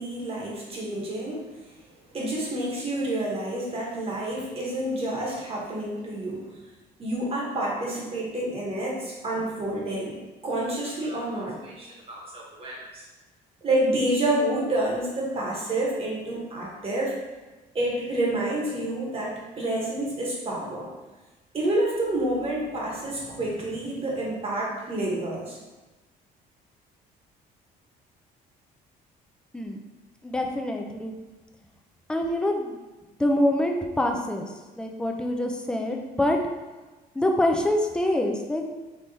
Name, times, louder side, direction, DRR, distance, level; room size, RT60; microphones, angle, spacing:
voice 1, 0.0-1.4 2.1-6.5 7.0-10.2 10.4-13.0 13.6-17.2 17.7-20.9 21.5-25.6, right 1 dB, 35° right, -3 dB, 1.4 m, -28 dB
voice 2, 30.2-31.1 32.1-32.8 33.2-34.5 34.8-36.4 37.2-38.6, left 1 dB, 5° left, 2 dB, 0.5 m, -25 dB
3.6 x 3.1 x 4.2 m, 1.2 s
cardioid pair, 110°, 17 cm